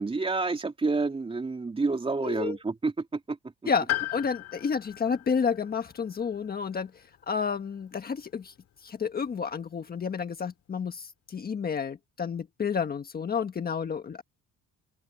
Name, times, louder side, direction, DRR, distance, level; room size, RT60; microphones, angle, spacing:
voice 1, 0.0-3.4, right 3 dB, 20° right, 3.2 m, -29 dB
voice 2, 2.2-2.5 3.7-8.5 8.8-14.2, left 6 dB, 30° left, 1.5 m, -30 dB
Piano, 3.9-8.0 9.3-9.4, left 17 dB, 65° left, 4.3 m, -37 dB
cardioid pair, 140°, 29 cm